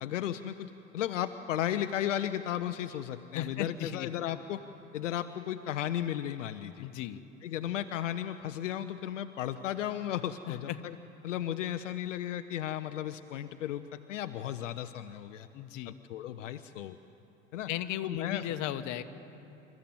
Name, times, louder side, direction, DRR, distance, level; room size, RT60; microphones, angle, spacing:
voice 1, 0.0-4.6 4.9-6.9 7.4-10.9 11.2-15.5 15.9-17.0 17.5-17.7 18.0-18.4, left 11 dB, 80° left, 9 dB, 0.8 m, -35 dB
voice 2, 3.3-4.1 6.8-7.2 10.5-10.8 15.5-16.0 17.7-19.0, left 12 dB, 50° left, 9 dB, 1.4 m, -36 dB
27.5 x 14.0 x 9.0 m, 2.8 s
hypercardioid pair, 80°, 37 cm